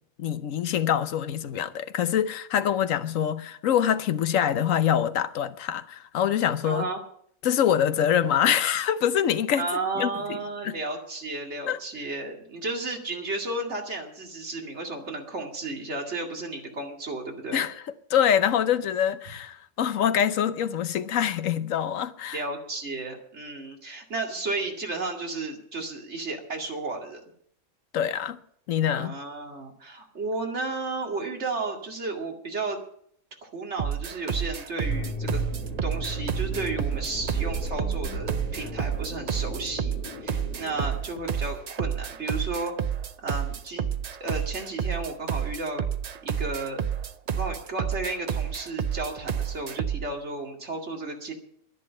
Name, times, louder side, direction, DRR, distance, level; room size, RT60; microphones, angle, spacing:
voice 1, 0.2-6.9 7.4-9.7 10.0-10.7 11.7-11.8 17.5-17.7 18.1-22.4 27.9-28.4 28.7-29.1, left 9 dB, 65° left, 1.1 m, -25 dB
voice 2, 6.6-7.0 9.6-17.6 22.3-27.2 28.9-32.8 33.4-35.4 35.8-42.7 43.2-43.9 44.2-45.8 46.2-46.8 47.3-51.3, right 3 dB, 50° right, 2.6 m, -33 dB
sound 1, 33.8-50.1, right 8 dB, 85° right, 0.3 m, -30 dB
sound 2, 34.8-41.0, right 1 dB, 85° left, 2.8 m, -35 dB
11.0 x 10.5 x 8.7 m
omnidirectional pair, 1.5 m